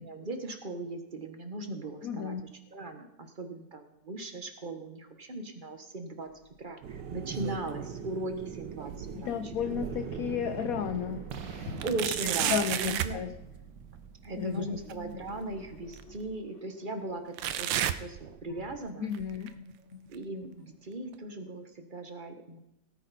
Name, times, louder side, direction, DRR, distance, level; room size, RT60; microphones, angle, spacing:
voice 1, 0.0-2.4 2.7-6.3 6.6-9.7 11.8-13.2 14.2-19.1 20.1-22.6, right 2 dB, 30° right, 7 dB, 1.1 m, -38 dB
voice 2, 2.0-2.5 9.1-11.8 12.5-13.3 14.4-14.8 19.0-19.6, left 8 dB, 65° left, 9 dB, 0.9 m, -33 dB
sound 1, 6.8-16.4, right 6 dB, 70° right, 1.6 m, -43 dB
sound 2, 7.0-7.9 8.3-10.2 10.7-10.8 11.8-13.2 14.9-15.0 15.9-16.0 17.4-18.8 19.1-19.5 20.1-20.2 21.1-21.2, right 11 dB, 85° right, 1.4 m, -33 dB
sound 3, 14.5-17.1 18.5-20.9, left 2 dB, 45° left, 1.1 m, -49 dB
18.0 x 9.1 x 4.2 m, 0.86 s
omnidirectional pair, 2.1 m